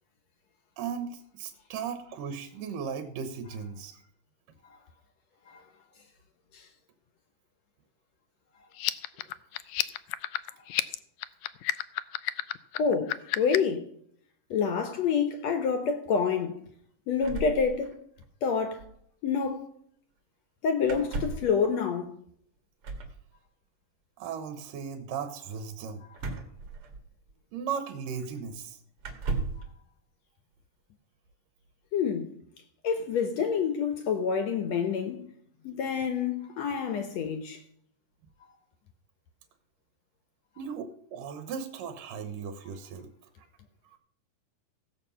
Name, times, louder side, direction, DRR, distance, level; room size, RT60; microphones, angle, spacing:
voice 1, 0.8-4.1 9.1-9.2 24.2-26.0 27.5-28.8 40.6-43.1, right 6 dB, 70° right, 2.6 m, -37 dB
sound 1, 8.7-13.8, left 16 dB, 90° left, 1.6 m, -31 dB
voice 2, 12.7-13.9 14.5-16.6 17.1-18.0 18.4-18.8 19.2-19.7 20.6-22.1 31.9-32.3 32.8-35.3 35.6-37.6, left 6 dB, 65° left, 1.8 m, -28 dB
sound 2, 17.2-18.3 18.5-18.6 18.8-19.0 20.8-21.6 22.8-23.2 26.1-27.3 28.2-28.3 29.0-29.7, right 4 dB, 45° right, 2.3 m, -35 dB
16.0 x 8.1 x 5.6 m
omnidirectional pair, 4.1 m